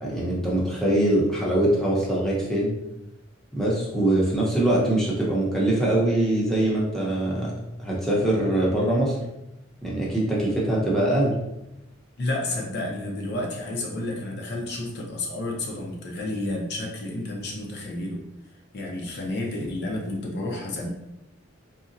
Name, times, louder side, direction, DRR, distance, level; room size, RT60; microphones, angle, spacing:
voice 1, 0.0-2.7 3.5-7.5 7.8-9.2 9.8-11.3, right 1 dB, ahead, -6 dB, 0.6 m, -23 dB
voice 2, 12.2-18.2 18.7-20.9, left 2 dB, 55° left, 0 dB, 0.5 m, -31 dB
3.7 x 2.0 x 2.6 m, 0.90 s
head